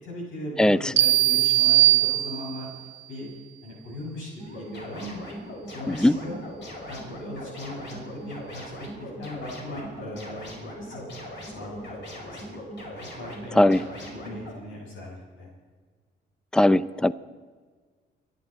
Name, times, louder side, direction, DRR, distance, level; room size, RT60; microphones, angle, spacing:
voice 1, 0.0-2.7 3.1-3.3 3.6-5.2 5.7-6.4 6.8-8.7 9.0-10.5 10.8-11.1 11.4-12.0 12.3-12.5 12.9-13.6 14.1-15.5, left 1 dB, 80° left, -3 dB, 5.9 m, -38 dB
voice 2, 0.6-0.9 5.9-6.2 13.6-13.8 16.5-17.1, left 1 dB, 5° left, 17 dB, 0.5 m, -19 dB
sound 1, 1.0-2.8, right 16 dB, 60° right, 1.0 m, -20 dB
sound 2, 4.4-14.5, equal, 65° left, 5.8 m, -40 dB
25.5 x 11.0 x 4.3 m, 1.5 s
cardioid pair, 90°, 20 cm